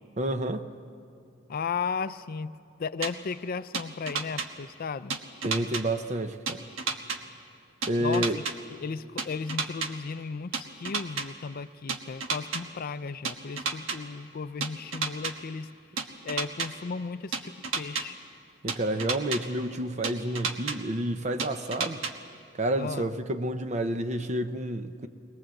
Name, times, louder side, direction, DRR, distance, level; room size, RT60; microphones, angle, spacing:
voice 1, 0.2-0.7 5.4-6.6 7.9-8.4 18.6-22.0 22.6-25.1, right 1 dB, 35° right, 9 dB, 0.7 m, -29 dB
voice 2, 1.5-2.5 2.8-5.2 8.0-8.4 8.8-15.7 16.2-18.2 22.8-23.1, left 5 dB, 45° left, 14 dB, 0.4 m, -35 dB
sound 1, 3.0-3.1 3.7-4.5 5.1-5.8 6.5-7.2 7.8-8.5 9.2-9.9 10.5-11.3 11.9-12.6 13.2-14.0 14.6-15.3 16.0-16.7 17.3-18.0 18.7-19.4 20.0-20.8 21.4-22.1, right 5 dB, 85° right, 1.3 m, -30 dB
21.0 x 20.0 x 7.7 m, 2.4 s
head